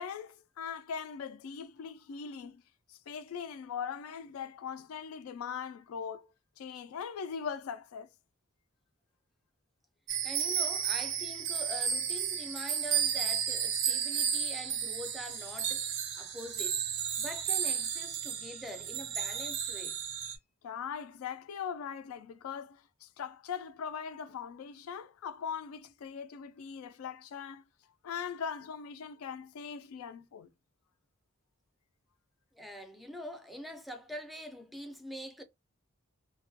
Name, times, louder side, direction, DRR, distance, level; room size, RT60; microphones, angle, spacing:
voice 1, 0.0-2.6 2.9-8.1 20.6-27.6 28.0-30.5, left 7 dB, 80° left, 0.3 m, -40 dB
sound 1, 10.1-20.4, right 8 dB, 55° right, 0.5 m, -33 dB
voice 2, 10.2-16.8 17.2-20.0 32.6-35.4, equal, ahead, 0.4 m, -44 dB
2.3 x 2.1 x 2.6 m
head